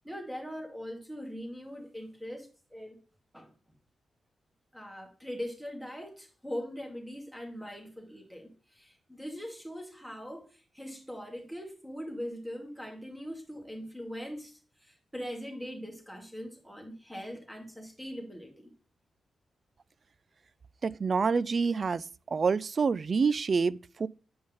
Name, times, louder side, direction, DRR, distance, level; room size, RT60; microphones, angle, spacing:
voice 1, 0.0-3.0 3.3-3.5 4.7-10.5 10.7-14.5 14.8-18.7, equal, 5° right, 2.5 m, -41 dB
voice 2, 20.8-22.0 22.3-24.1, right 5 dB, 50° right, 0.3 m, -27 dB
8.7 x 5.1 x 3.7 m
cardioid pair, 65°, 0 cm